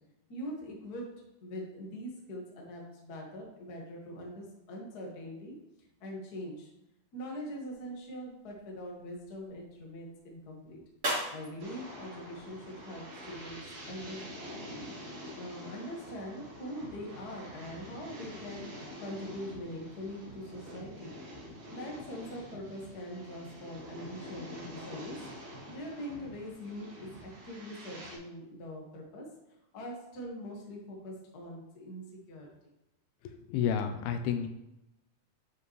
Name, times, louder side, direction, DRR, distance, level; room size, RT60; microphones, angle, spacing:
voice 1, 0.3-5.6 6.0-6.7 7.1-10.8 11.3-14.3 15.4-21.2 21.7-27.1 27.4-29.3 29.7-32.5, equal, 55° left, -2 dB, 1.0 m, -43 dB
sound 1, 7.4-13.3, equal, 25° right, 2.4 m, -42 dB
sound 2, 11.6-28.2, equal, 80° right, 3.4 m, -46 dB
voice 2, 33.2-34.5, left 8 dB, 80° left, 7 dB, 2.4 m, -31 dB
9.7 x 5.0 x 3.2 m, 0.89 s
omnidirectional pair, 4.4 m